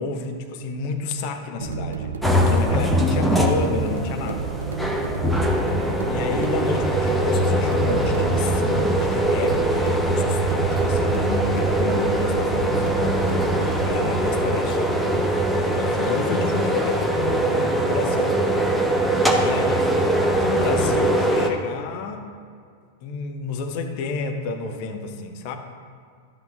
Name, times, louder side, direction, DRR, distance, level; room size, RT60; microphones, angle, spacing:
voice 1, 0.0-4.5 6.1-12.8 13.6-15.0 15.7-18.4 19.4-22.3 23.0-25.6, left 3 dB, 45° left, 5 dB, 0.8 m, -30 dB
sound 1, 1.6-14.6, right 5 dB, 70° right, 0.6 m, -32 dB
sound 2, 2.2-21.5, right 1 dB, ahead, 0.9 m, -22 dB
11.5 x 8.1 x 2.5 m, 2.2 s
figure-of-eight pair, 90°, 0 cm